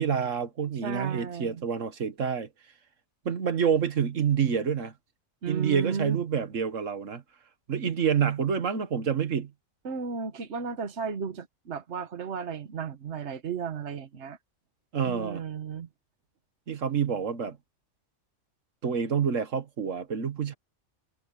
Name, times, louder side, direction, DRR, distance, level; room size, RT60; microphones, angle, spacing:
voice 1, 0.0-2.5 3.2-4.9 5.5-7.2 7.7-9.5 14.9-15.4 16.7-17.6 18.8-20.5, right 7 dB, 85° right, 1.7 m, -27 dB
voice 2, 0.8-1.6 5.4-6.4 9.8-14.4 15.0-15.9, right 6 dB, 65° right, 1.5 m, -34 dB
omnidirectional pair, 1.3 m